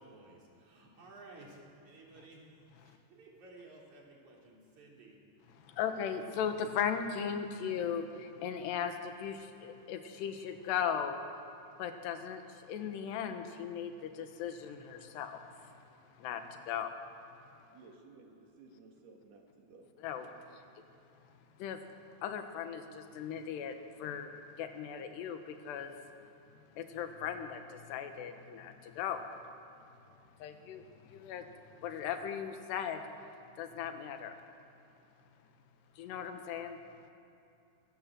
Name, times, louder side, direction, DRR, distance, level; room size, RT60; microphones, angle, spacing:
voice 1, 0.0-5.2, right 2 dB, 45° right, -2 dB, 4.6 m, -55 dB
voice 2, 5.8-11.2 11.8-15.8 16.2-16.9 20.0-20.6 21.6-21.8 22.2-24.3 24.6-26.0 26.8-29.2 30.4-31.5 31.8-33.0 33.6-34.3 36.0-36.8, left 8 dB, 80° left, 7 dB, 3.4 m, -38 dB
voice 3, 17.7-19.9, right 3 dB, 70° right, 1 dB, 4.3 m, -57 dB
23.0 x 17.5 x 7.6 m, 2.7 s
omnidirectional pair, 4.9 m